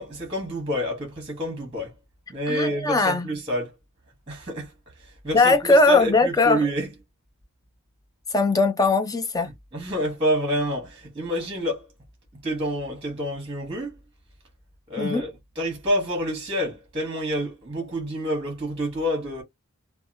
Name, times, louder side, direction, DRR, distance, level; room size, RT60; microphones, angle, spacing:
voice 1, 0.0-1.9 2.3-3.8 4.3-6.9 9.4-11.9 12.3-14.0 14.9-19.4, equal, 25° right, 1.0 m, -28 dB
voice 2, 2.5-3.3 5.3-6.6 8.3-9.5 15.0-15.2, left 2 dB, 15° left, 0.3 m, -20 dB
2.8 x 2.2 x 2.6 m
head